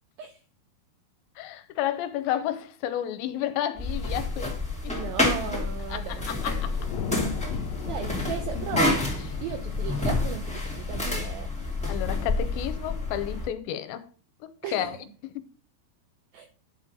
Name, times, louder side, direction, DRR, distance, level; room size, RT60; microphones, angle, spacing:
voice 1, 1.4-4.6 4.8-4.9 5.9-6.9 11.9-14.1 14.4-15.0 15.2-15.4, left 11 dB, 85° left, 3.0 m, -31 dB
sound 1, 3.8-13.5, left 2 dB, 5° left, 1.0 m, -29 dB
voice 2, 4.9-6.3 7.8-9.0 9.4-11.5 14.6-15.0 16.3-16.5, right 8 dB, 85° right, 2.1 m, -36 dB
Thunder / Rain, 6.2-12.5, left 6 dB, 70° left, 2.4 m, -37 dB
11.0 x 3.8 x 6.7 m
omnidirectional pair, 5.1 m